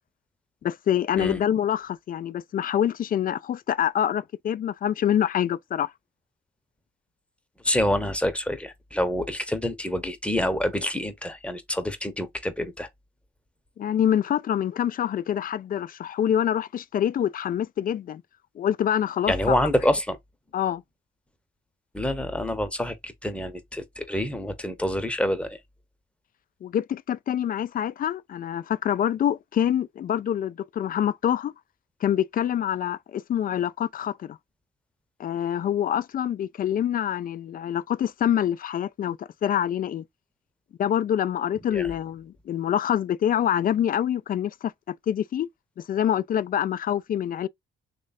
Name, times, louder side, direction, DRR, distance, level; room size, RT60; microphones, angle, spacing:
voice 1, 0.6-5.9 13.8-18.2 18.6-19.7 20.5-20.8 26.6-31.5 32.0-34.4 35.2-40.0 40.8-45.5 45.8-47.5, left 10 dB, 45° left, 0.4 m, -26 dB
voice 2, 7.6-12.9 19.3-20.2 21.9-25.6 41.7-41.9, equal, 5° left, 0.8 m, -27 dB
3.1 x 2.3 x 4.0 m
cardioid pair, 90°, 20 cm